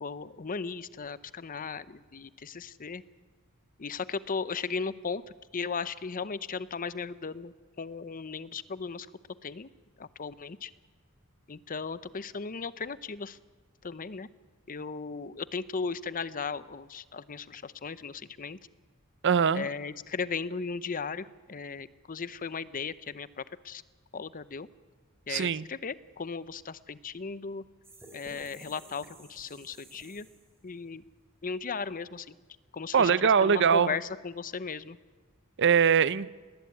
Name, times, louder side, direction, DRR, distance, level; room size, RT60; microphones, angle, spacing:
voice 1, 0.0-3.0 3.8-5.2 5.5-9.1 9.4-9.7 10.0-10.7 11.5-13.4 13.8-14.3 14.7-18.6 19.5-23.8 24.1-24.7 25.3-27.6 28.1-30.3 30.6-31.0 31.4-32.3 32.7-35.0, left 5 dB, 40° left, 0.7 m, -36 dB
voice 2, 19.2-19.7 25.3-25.6 32.9-33.9 35.6-36.3, right 6 dB, 55° right, 0.6 m, -22 dB
sound 1, 27.8-30.6, right 2 dB, 10° right, 3.9 m, -52 dB
20.0 x 18.5 x 9.5 m
head